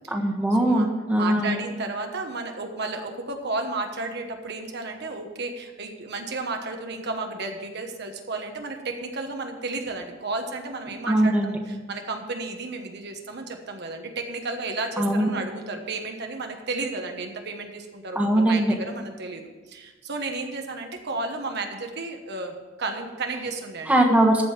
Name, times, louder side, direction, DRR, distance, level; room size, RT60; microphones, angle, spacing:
voice 1, 0.1-1.6 11.1-11.6 15.0-15.3 18.1-18.7 23.9-24.4, right 1 dB, 10° right, 0 dB, 1.4 m, -21 dB
voice 2, 1.2-24.0, right 3 dB, 55° right, 4 dB, 1.2 m, -33 dB
14.5 x 5.3 x 7.5 m, 1.3 s
head